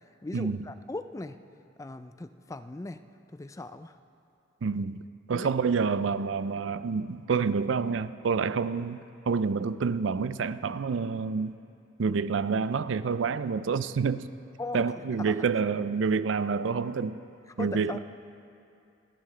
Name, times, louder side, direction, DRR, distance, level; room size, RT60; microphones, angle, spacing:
voice 1, 0.2-1.4 1.8-3.0 3.3-3.9 5.3-5.5 14.6-15.4 17.6-18.0, left 2 dB, 15° left, 0.4 m, -38 dB
voice 2, 4.6-5.0 5.3-11.6 12.0-14.3 14.7-17.1 17.6-18.0, right 5 dB, 75° right, 0.4 m, -28 dB
28.0 x 11.0 x 3.3 m
head